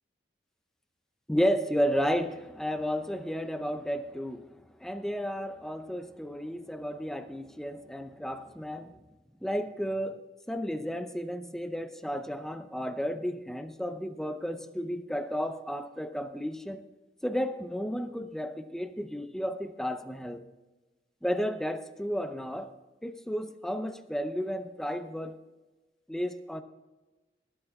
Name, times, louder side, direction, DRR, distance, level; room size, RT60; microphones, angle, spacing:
voice 1, 1.3-9.0 9.4-10.2 10.5-16.8 17.2-20.4 21.2-22.7 23.0-25.4 26.1-26.6, equal, 5° left, 9 dB, 0.7 m, -32 dB
20.5 x 8.9 x 3.6 m, 1.2 s
head